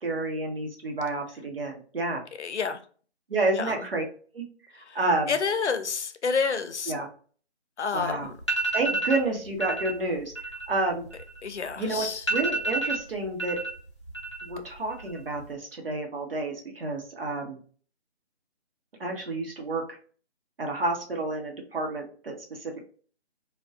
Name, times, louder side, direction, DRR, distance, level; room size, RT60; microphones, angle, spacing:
voice 1, 0.0-2.2 3.3-4.0 4.3-4.4 4.9-5.3 6.9-7.1 7.9-8.3 8.7-10.3 10.7-11.0 11.8-13.6 14.4-17.6 19.0-19.8 20.6-22.3 22.6-22.9, right 2 dB, 55° right, 0.9 m, -29 dB
voice 2, 2.4-2.8 3.5-3.9 4.7-5.0 5.3-6.9 7.8-8.3 11.4-12.2, left 5 dB, 85° left, 0.5 m, -29 dB
sound 1, 8.0-8.1 8.4-9.2 9.6-9.9 10.2-11.7 12.0-12.1 12.3-13.7 14.0-14.6 14.9-15.4, right 2 dB, 25° left, 0.5 m, -29 dB
2.5 x 2.2 x 2.2 m
figure-of-eight pair, 160°, 34 cm